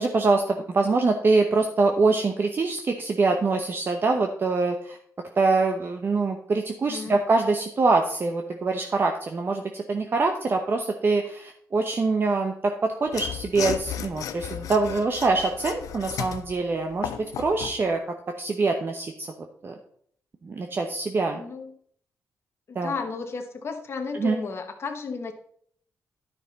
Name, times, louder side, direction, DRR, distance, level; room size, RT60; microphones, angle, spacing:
voice 1, 0.0-5.0 5.4-17.1 17.4-18.0 18.4-19.3 19.6-19.7 20.4-21.4 22.7-22.9 24.1-24.4, right 3 dB, 40° right, 4 dB, 0.8 m, -24 dB
voice 2, 6.8-7.2 21.3-21.7 22.7-25.3, left 4 dB, 45° left, 4 dB, 1.1 m, -33 dB
Mechanisms / Sawing, 13.1-17.8, left 10 dB, 80° left, 0.6 m, -34 dB
10.5 x 5.8 x 4.0 m, 0.63 s
cardioid pair, 90°, 6 cm